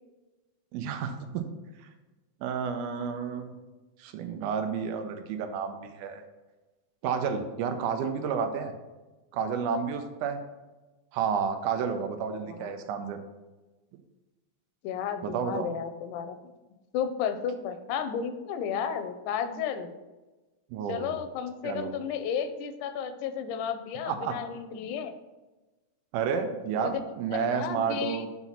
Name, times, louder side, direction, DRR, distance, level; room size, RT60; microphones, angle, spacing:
voice 1, 0.7-1.4 1.8-1.9 2.4-3.5 4.0-6.2 7.0-8.7 9.3-10.4 11.1-13.2 15.2-15.7 20.7-21.2 21.6-21.9 24.0-24.3 26.1-28.3, right 6 dB, 90° right, 6 dB, 2.1 m, -31 dB
voice 2, 14.8-16.4 16.9-19.9 20.9-25.1 26.8-27.0 27.5-28.2, left 7 dB, 90° left, 9 dB, 2.1 m, -33 dB
5.8 x 4.0 x 5.6 m, 1.1 s
omnidirectional pair, 3.5 m